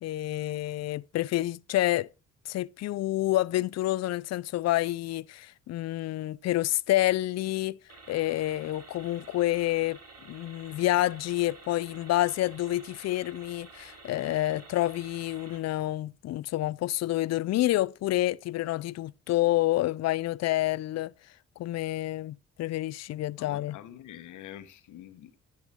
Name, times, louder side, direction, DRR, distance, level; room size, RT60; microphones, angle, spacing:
voice 1, 0.0-2.1 2.5-7.8 8.1-10.0 10.3-21.1 21.6-23.8, left 15 dB, 60° left, 0.4 m, -28 dB
sound 1, 7.9-15.6, right 3 dB, 55° right, 3.2 m, -51 dB
voice 2, 23.4-25.4, left 11 dB, 80° left, 1.2 m, -46 dB
10.5 x 8.1 x 3.6 m
cardioid pair, 90°, 30 cm